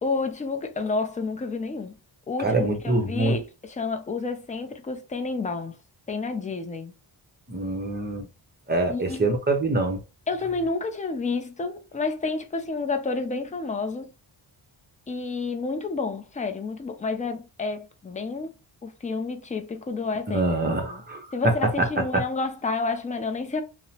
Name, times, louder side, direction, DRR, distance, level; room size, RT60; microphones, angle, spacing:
voice 1, 0.0-2.0 2.3-5.8 6.1-6.9 8.9-9.3 10.3-14.1 15.1-18.5 18.8-21.0 21.3-23.6, left 4 dB, 15° left, 0.3 m, -30 dB
voice 2, 2.4-3.3 7.5-8.3 8.7-10.0 20.3-21.2 22.1-22.2, right 2 dB, 20° right, 0.7 m, -25 dB
2.7 x 2.1 x 2.7 m
cardioid pair, 95°, 48 cm